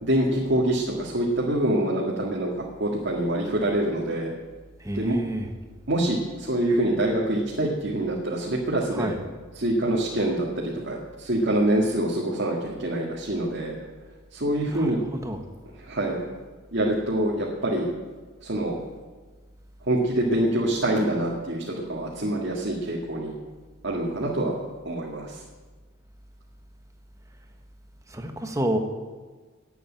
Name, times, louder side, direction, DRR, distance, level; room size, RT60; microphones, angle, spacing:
voice 1, 0.0-2.5 2.8-4.3 4.9-5.2 5.9-9.1 9.5-13.8 14.3-15.0 15.8-16.2 16.7-17.9 18.4-18.7 19.8-23.3 23.8-24.6 24.8-25.4, right 1 dB, 60° right, -3 dB, 2.0 m, -25 dB
voice 2, 4.8-5.5 8.9-9.2 14.7-15.4 28.1-28.8, right 1 dB, 15° right, 4 dB, 1.2 m, -29 dB
11.5 x 8.6 x 9.0 m, 1.4 s
head